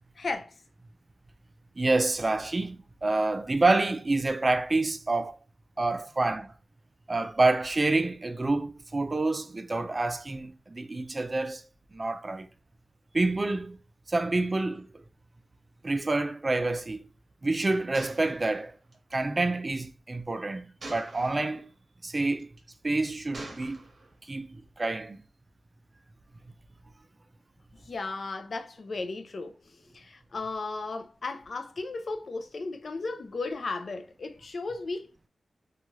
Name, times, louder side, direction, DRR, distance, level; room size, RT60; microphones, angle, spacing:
voice 1, 0.2-0.6 27.7-35.3, left 3 dB, 60° left, 0.4 m, -35 dB
voice 2, 1.8-5.4 5.8-6.5 7.1-11.6 11.9-12.5 13.1-13.8 14.1-15.0 15.8-17.1 17.4-18.8 19.1-21.7 22.0-22.5 22.8-23.8 24.2-25.2, right 2 dB, 35° right, 0.3 m, -28 dB
Gunshot gunfire, 17.9-19.2 20.8-21.6 22.4-22.7 23.3-24.1, right 2 dB, 55° right, 0.8 m, -44 dB
2.7 x 2.3 x 3.0 m
wide cardioid pair, 75°, 0 cm